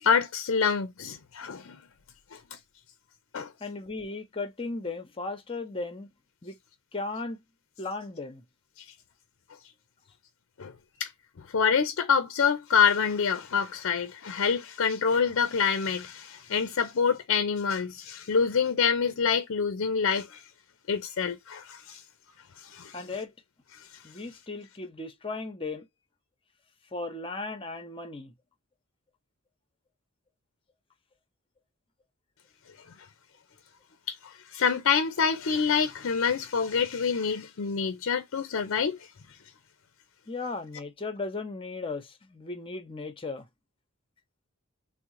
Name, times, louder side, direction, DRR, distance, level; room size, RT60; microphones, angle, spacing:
voice 1, 0.0-1.8 3.3-3.5 10.6-10.7 11.0-11.1 11.4-20.4 20.9-22.0 22.6-23.0 34.1-39.0, left 6 dB, 65° left, 0.5 m, -26 dB
voice 2, 3.6-6.1 6.4-6.6 6.9-7.4 7.8-8.4 22.9-23.3 24.0-25.9 26.9-28.3 40.3-43.5, left 3 dB, 25° left, 0.7 m, -36 dB
3.7 x 2.1 x 3.0 m
head